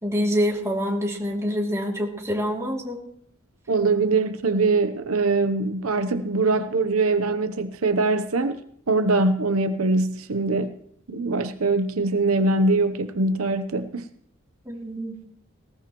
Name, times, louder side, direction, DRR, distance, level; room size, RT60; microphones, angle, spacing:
voice 1, 0.0-3.0 14.7-15.1, equal, 15° right, -2 dB, 2.7 m, -26 dB
voice 2, 3.7-8.6 8.9-10.8 11.1-14.0, right 3 dB, 80° right, 10 dB, 0.8 m, -22 dB
19.5 x 18.0 x 3.0 m, 0.66 s
head